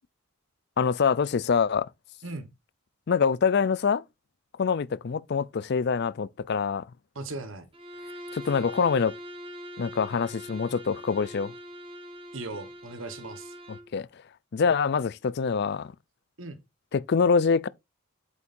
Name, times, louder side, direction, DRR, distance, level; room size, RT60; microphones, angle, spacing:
voice 1, 0.8-1.9 3.1-4.0 4.6-6.8 8.3-9.1 9.8-11.5 13.7-14.1 14.5-15.9 16.9-17.7, left 5 dB, 50° left, 0.4 m, -25 dB
voice 2, 2.2-2.5 7.1-7.7 12.3-13.5 16.4-16.6, right 2 dB, 65° right, 1.1 m, -38 dB
Bowed string instrument, 7.7-13.9, equal, 25° right, 1.5 m, -43 dB
8.3 x 7.2 x 2.5 m
head